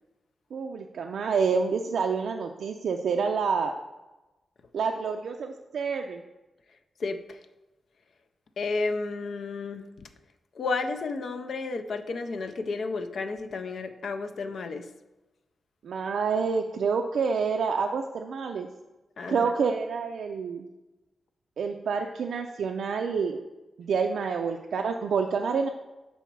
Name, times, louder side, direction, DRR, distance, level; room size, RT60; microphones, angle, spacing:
voice 1, 0.5-3.7 4.7-6.2 15.8-18.7 19.3-20.7 21.6-23.4 23.8-25.7, right 5 dB, 75° right, 3 dB, 0.4 m, -28 dB
voice 2, 7.0-7.4 8.6-9.8 10.6-14.9 19.2-19.5, left 3 dB, 60° left, 8 dB, 0.4 m, -32 dB
7.0 x 4.0 x 4.6 m, 1.1 s
wide cardioid pair, 150°, 0 cm